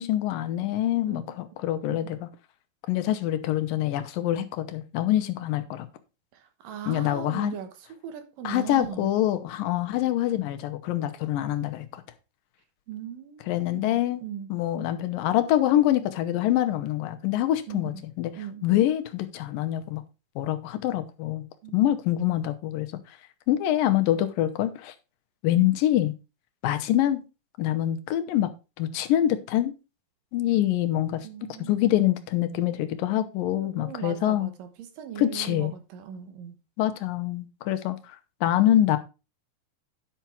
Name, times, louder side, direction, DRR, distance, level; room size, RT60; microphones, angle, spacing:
voice 1, 0.0-2.3 2.9-5.9 6.9-7.5 8.4-12.0 13.5-14.2 14.5-18.3 18.6-20.0 20.4-21.4 21.7-22.9 23.5-24.9 25.4-26.1 26.6-27.2 27.6-28.5 28.8-29.7 30.3-34.5 35.2-35.7 36.8-38.0 38.4-39.0, left 13 dB, 85° left, 2.7 m, -25 dB
voice 2, 6.3-9.1 12.9-14.5 17.7-17.9 18.4-18.7 21.6-21.9 31.2-31.7 33.5-34.7 35.0-36.6, right 9 dB, 80° right, 3.0 m, -39 dB
10.5 x 5.9 x 4.5 m
omnidirectional pair, 3.9 m